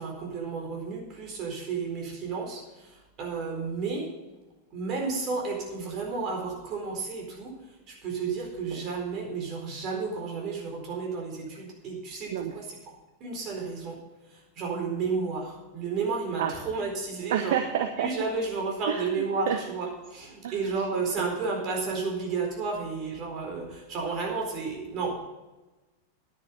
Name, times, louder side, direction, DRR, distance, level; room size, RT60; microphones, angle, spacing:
voice 1, 0.0-4.1 4.7-7.6 7.9-12.8 13.2-14.0 14.3-17.6 18.0-25.2, right 4 dB, 35° right, 1 dB, 4.3 m, -32 dB
voice 2, 17.3-18.1 18.9-19.6 20.4-20.6, right 9 dB, 55° right, 7 dB, 0.8 m, -29 dB
11.0 x 9.7 x 5.4 m, 1.1 s
figure-of-eight pair, 90°, 0 cm